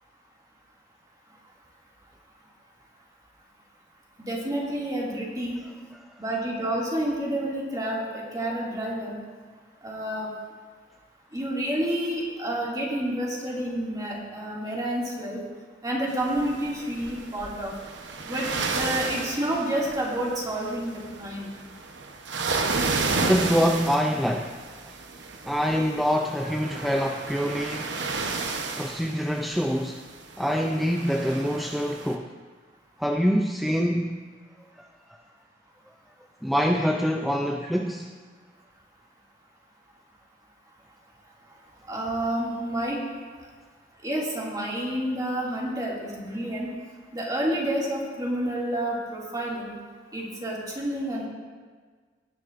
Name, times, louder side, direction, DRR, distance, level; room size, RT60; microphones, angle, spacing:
voice 1, 4.2-5.6 6.2-9.2 9.8-10.3 11.3-15.4 15.8-17.7 18.3-18.5 18.7-21.5 41.9-43.0 44.0-46.7 47.1-49.7 50.1-51.3, right 1 dB, 20° right, -4 dB, 2.3 m, -29 dB
sound 1, 16.1-32.2, right 3 dB, 80° right, 0.9 m, -32 dB
voice 2, 23.2-24.9 25.5-27.9 28.8-30.0 30.4-32.3 33.0-34.2 34.8-34.9 36.4-38.1, equal, ahead, 3 dB, 0.4 m, -25 dB
17.5 x 10.0 x 2.6 m, 1.5 s
head